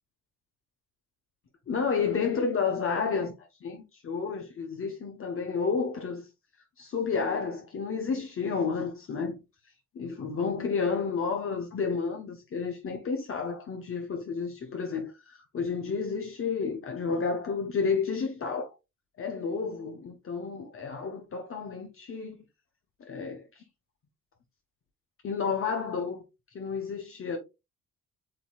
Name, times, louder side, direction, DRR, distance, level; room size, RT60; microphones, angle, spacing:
voice 1, 1.7-3.3 3.6-6.3 6.8-9.4 9.9-18.7 19.2-22.4 23.1-23.6 25.2-26.2 26.5-27.4, left 5 dB, 45° left, 1.0 m, -31 dB
7.7 x 2.8 x 2.4 m
cardioid pair, 90°, 30 cm